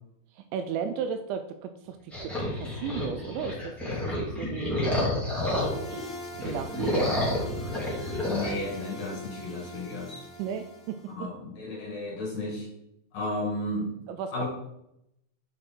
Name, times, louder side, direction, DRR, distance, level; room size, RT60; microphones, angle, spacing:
voice 1, 0.3-4.8 6.4-7.3 10.4-11.3 14.1-14.4, right 7 dB, 85° right, 8 dB, 2.7 m, -35 dB
sound 1, 2.1-6.0 6.3-8.5, left 1 dB, ahead, 1.5 m, -29 dB
sound 2, 5.3-11.1, equal, 80° left, 0.9 m, -43 dB
voice 2, 8.3-10.3 11.1-12.7 13.1-13.9 14.3-14.4, left 2 dB, 55° left, -3 dB, 3.3 m, -33 dB
8.4 x 5.1 x 4.4 m, 0.79 s
omnidirectional pair, 5.5 m